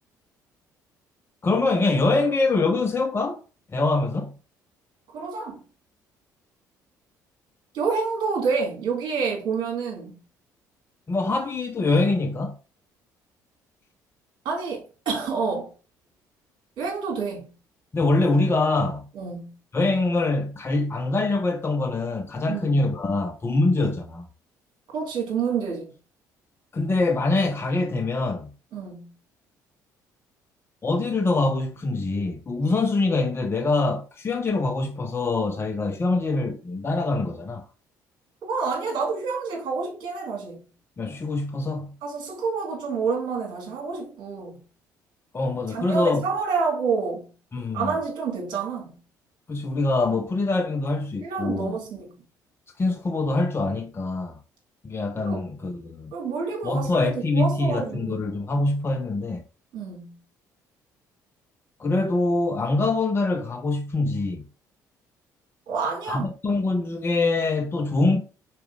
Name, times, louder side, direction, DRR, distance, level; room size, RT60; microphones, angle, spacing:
voice 1, 1.4-3.4 3.7-4.3 11.1-12.6 17.9-19.1 19.7-24.3 26.7-28.5 30.8-37.6 41.0-41.9 45.3-46.2 47.5-48.0 49.5-51.8 52.8-54.4 54.8-56.1 56.6-59.4 61.8-64.4 66.1-68.2, left 3 dB, 25° left, 0.9 m, -24 dB
voice 2, 5.1-5.6 7.7-10.2 14.4-15.7 16.8-17.5 19.1-19.5 22.5-22.8 24.9-25.9 28.7-29.1 38.4-40.6 42.0-44.6 45.7-47.3 47.7-49.0 51.2-52.1 55.2-55.4 56.1-58.3 59.7-60.1 65.7-66.3, right 5 dB, 50° right, 3.4 m, -28 dB
5.0 x 4.7 x 4.9 m
figure-of-eight pair, 50°, 10 cm